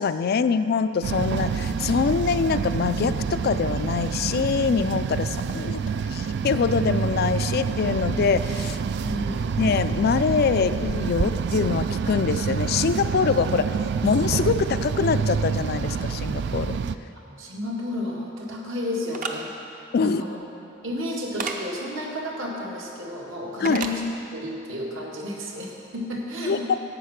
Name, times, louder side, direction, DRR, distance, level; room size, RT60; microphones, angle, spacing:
voice 1, 0.0-5.8 6.1-8.8 9.6-13.8 14.0-16.8 19.9-20.2 23.6-23.8 26.5-26.8, left 5 dB, 50° left, 12 dB, 0.3 m, -24 dB
sound 1, 1.0-17.0, right 6 dB, 55° right, 0.3 m, -27 dB
voice 2, 9.0-9.6 17.2-19.5 20.0-20.4 20.8-24.0 24.3-26.7, left 1 dB, 75° right, -2 dB, 1.8 m, -32 dB
sound 2, 19.1-19.3 21.4-21.6 23.7-24.0, right 5 dB, 40° right, 0.7 m, -30 dB
11.0 x 8.1 x 5.9 m, 2.8 s
head